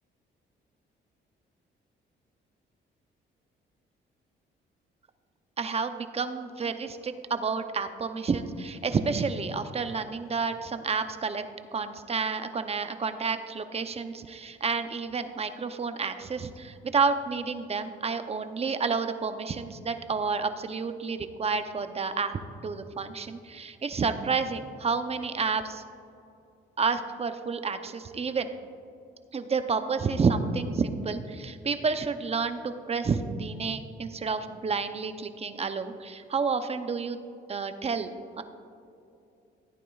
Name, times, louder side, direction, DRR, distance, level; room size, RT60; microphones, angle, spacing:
voice 1, 5.6-11.4 11.7-25.8 26.8-28.5 29.3-37.2 37.5-38.1 38.4-38.5, right 5 dB, 30° right, 9 dB, 0.6 m, -30 dB
15.0 x 9.2 x 2.4 m, 2.7 s
cardioid pair, 90°, 20 cm